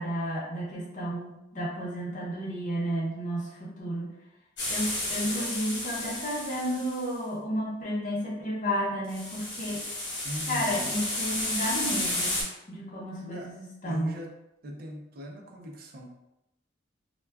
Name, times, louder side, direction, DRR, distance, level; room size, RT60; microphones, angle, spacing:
voice 1, 0.0-4.1 4.7-9.8 10.5-12.4 12.7-14.1, equal, 45° left, -4 dB, 0.7 m, -32 dB
sound 1, 4.6-7.1 9.1-12.4, left 1 dB, 80° left, 1.1 m, -32 dB
voice 2, 10.2-11.0 13.2-13.5 13.8-14.3 14.6-16.1, equal, 55° right, 1 dB, 0.4 m, -40 dB
2.2 x 2.2 x 3.3 m, 0.88 s
head